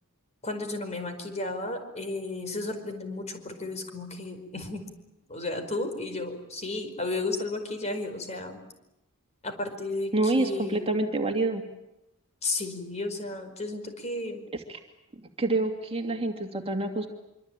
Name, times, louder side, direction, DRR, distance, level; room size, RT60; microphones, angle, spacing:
voice 1, 0.4-4.9 5.3-8.6 9.4-11.0 12.4-14.4, left 2 dB, 35° left, 7 dB, 4.9 m, -33 dB
voice 2, 10.1-11.6 14.7-14.8 15.4-17.1, right 2 dB, 30° right, 4 dB, 2.5 m, -27 dB
25.5 x 25.0 x 9.1 m, 0.87 s
head